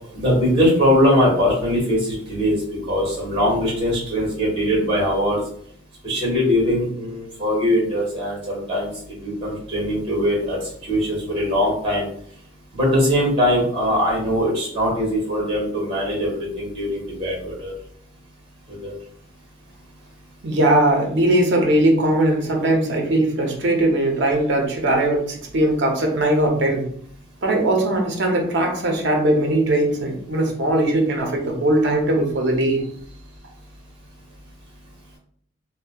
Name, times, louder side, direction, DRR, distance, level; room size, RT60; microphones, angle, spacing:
voice 1, 0.1-2.6 2.9-5.4 6.0-12.1 12.7-17.7 18.7-19.0, equal, 30° right, -4 dB, 1.4 m, -21 dB
voice 2, 20.4-26.8 27.4-32.8, right 1 dB, 65° right, 1 dB, 0.6 m, -20 dB
2.7 x 2.1 x 2.3 m, 0.62 s
head